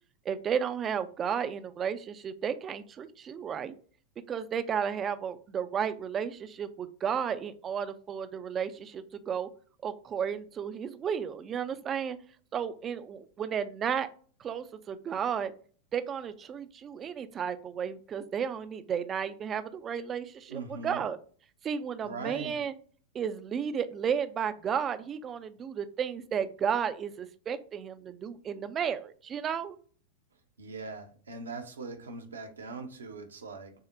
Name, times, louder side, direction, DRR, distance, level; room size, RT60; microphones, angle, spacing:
voice 1, 0.3-3.7 4.3-9.5 9.8-12.2 12.5-14.1 14.4-15.5 15.9-21.2 21.6-22.7 23.1-29.7, right 7 dB, 25° right, 11 dB, 0.4 m, -33 dB
voice 2, 20.5-21.1 22.0-22.6 30.6-33.7, right 4 dB, 70° right, 4 dB, 0.7 m, -41 dB
6.2 x 2.1 x 2.6 m, 0.44 s
figure-of-eight pair, 90°, 0 cm